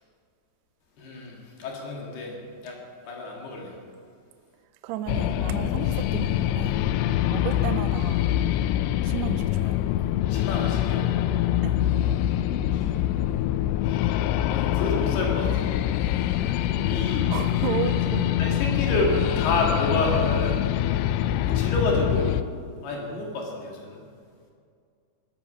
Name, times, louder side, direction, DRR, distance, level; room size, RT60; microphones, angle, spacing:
voice 1, 1.0-2.4 2.6-2.8 3.1-3.8 10.3-11.1 12.7-13.0 14.5-15.7 16.8-17.3 18.4-20.6 21.5-22.4 22.8-24.0, left 2 dB, 65° left, -1 dB, 4.0 m, -29 dB
voice 2, 4.8-6.8 7.3-8.3 9.0-9.8 11.6-11.8 17.3-18.3, right 11 dB, 80° right, 10 dB, 2.5 m, -33 dB
sound 1, 5.1-22.4, left 12 dB, 85° left, 2.8 m, -24 dB
21.0 x 10.5 x 5.5 m, 2.2 s
omnidirectional pair, 5.2 m